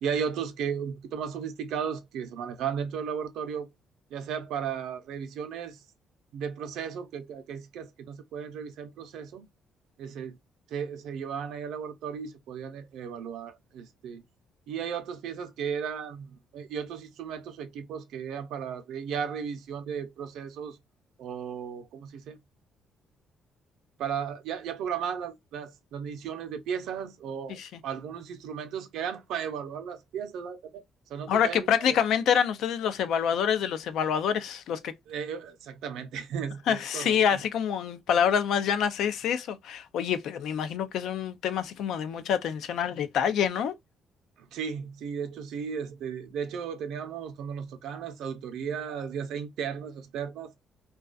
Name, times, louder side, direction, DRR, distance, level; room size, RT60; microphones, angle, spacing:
voice 1, 0.0-3.7 4.1-5.8 6.3-9.5 10.0-10.4 10.7-14.2 14.7-20.8 21.2-22.4 24.0-27.6 27.8-30.8 31.1-32.0 35.1-37.4 44.4-50.5, right 7 dB, 80° right, 0.5 m, -35 dB
voice 2, 27.5-27.8 31.3-34.9 36.7-43.8, left 8 dB, 70° left, 0.4 m, -27 dB
2.3 x 2.3 x 2.3 m
cardioid pair, 145°, 0 cm